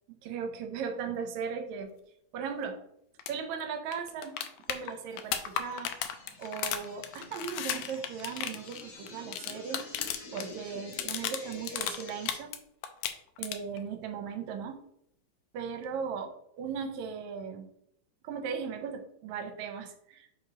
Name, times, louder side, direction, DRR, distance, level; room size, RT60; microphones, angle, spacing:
voice 1, 0.1-1.9 2.3-2.8 3.3-4.4 4.7-5.9 6.4-9.8 10.3-12.5 13.4-14.8 15.5-16.3 16.6-17.7 18.2-20.4, right 6 dB, 75° right, 6 dB, 1.9 m, -37 dB
sound 1, 3.2-3.3 3.6-3.7 3.9-10.5 10.7-12.6 12.8-13.8 15.8-15.9, left 10 dB, 80° left, 1.7 m, -35 dB
sound 2, 4.7-12.4, left 2 dB, 60° left, 1.0 m, -49 dB
4.9 x 4.9 x 4.8 m, 0.73 s
omnidirectional pair, 3.5 m